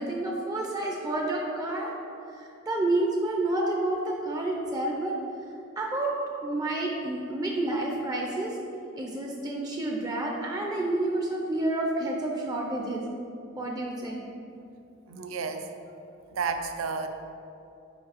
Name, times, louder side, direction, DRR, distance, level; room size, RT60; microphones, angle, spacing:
voice 1, 0.0-1.9 2.3-5.2 5.8-6.1 6.4-8.6 9.0-13.0 13.6-14.2, right 2 dB, 20° right, -1 dB, 0.5 m, -29 dB
voice 2, 15.1-15.7 16.3-17.1, right 5 dB, 80° right, 7 dB, 0.5 m, -31 dB
5.0 x 4.9 x 4.0 m, 2.7 s
head